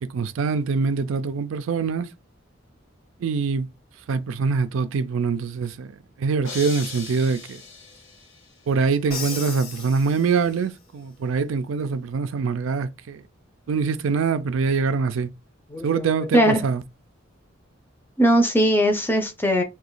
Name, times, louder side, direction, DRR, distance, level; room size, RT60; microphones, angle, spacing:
voice 1, 0.0-2.1 3.2-3.7 4.1-5.9 6.2-7.6 8.7-13.2 13.7-15.3 15.8-16.8, right 5 dB, 85° right, 0.4 m, -24 dB
sound 1, 6.4-8.5, left 4 dB, 75° left, 1.1 m, -38 dB
Crash cymbal, 9.1-10.8, left 5 dB, 50° left, 0.8 m, -36 dB
voice 2, 15.7-16.1 16.3-16.6 18.2-19.6, equal, 10° left, 0.5 m, -19 dB
2.9 x 2.2 x 3.9 m
head